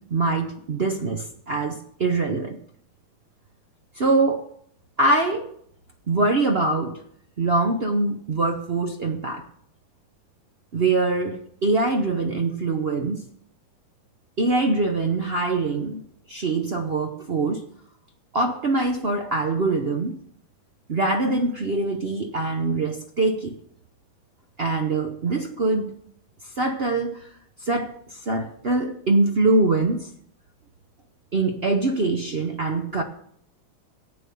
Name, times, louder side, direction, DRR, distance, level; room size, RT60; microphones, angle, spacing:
voice 1, 0.0-2.6 3.9-4.5 5.0-5.5 6.1-7.0 7.4-9.4 10.7-13.2 14.4-17.7 18.3-20.2 20.9-23.5 24.6-25.9 26.6-27.3 27.6-30.1 31.3-33.0, right 3 dB, 55° right, 0.6 m, -23 dB
11.5 x 8.8 x 7.0 m
omnidirectional pair, 2.2 m